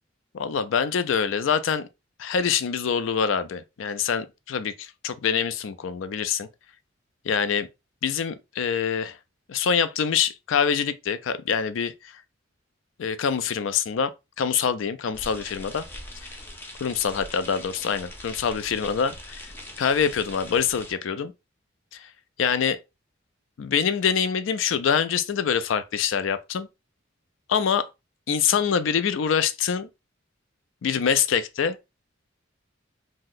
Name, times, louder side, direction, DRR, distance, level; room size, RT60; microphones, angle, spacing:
voice 1, 0.3-1.9 2.2-6.5 7.2-7.7 8.0-9.2 9.5-12.2 13.0-14.1 14.4-15.8 16.8-19.5 19.8-21.3 21.9-22.1 22.4-22.8 23.6-26.7 27.5-27.9 28.3-29.9 30.8-31.8, left 7 dB, 75° left, 0.4 m, -25 dB
sound 1, 15.1-20.9, left 1 dB, 10° left, 0.5 m, -42 dB
2.8 x 2.1 x 3.7 m
head